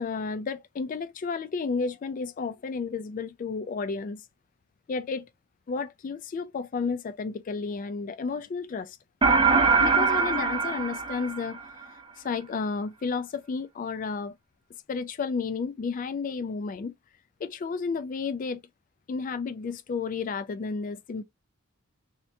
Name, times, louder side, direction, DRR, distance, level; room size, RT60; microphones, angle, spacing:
voice 1, 0.0-4.2 4.9-5.3 5.7-9.0 9.8-11.6 12.2-14.4 14.9-16.9 17.4-18.6 19.1-21.2, left 4 dB, 40° left, 0.3 m, -32 dB
sound 1, 9.2-11.8, right 4 dB, 25° right, 0.5 m, -22 dB
3.3 x 2.9 x 2.6 m
head